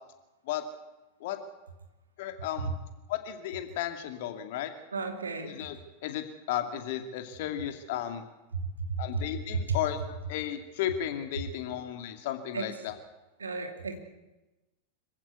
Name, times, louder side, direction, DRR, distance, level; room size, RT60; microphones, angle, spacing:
voice 1, 2.2-2.7 3.1-4.7 5.4-5.8 6.0-8.2 9.0-13.0, left 11 dB, 50° left, 7 dB, 2.4 m, -34 dB
voice 2, 4.9-5.5 8.5-8.6 9.0-9.3 9.5-9.8 12.5-12.7 13.4-14.0, right 4 dB, 75° right, 5 dB, 2.6 m, -33 dB
25.5 x 15.0 x 8.3 m, 1.1 s
figure-of-eight pair, 90°, 0 cm